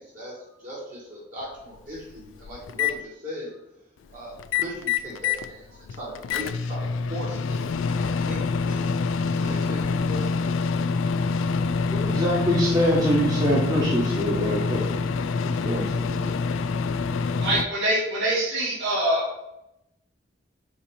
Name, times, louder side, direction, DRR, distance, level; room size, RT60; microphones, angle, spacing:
voice 1, 0.0-3.6 4.0-8.8 9.4-10.3, equal, 40° right, -7 dB, 2.1 m, -38 dB
Microwave oven, 1.4-1.5 2.0-2.9 4.4-5.5 5.9-17.6, left 4 dB, 80° left, 0.3 m, -26 dB
voice 2, 11.9-14.8 15.4-16.2, equal, 20° right, -7 dB, 1.2 m, -24 dB
voice 3, 17.4-19.3, right 1 dB, 70° right, -9 dB, 2.1 m, -24 dB
7.3 x 2.9 x 5.0 m, 0.83 s
head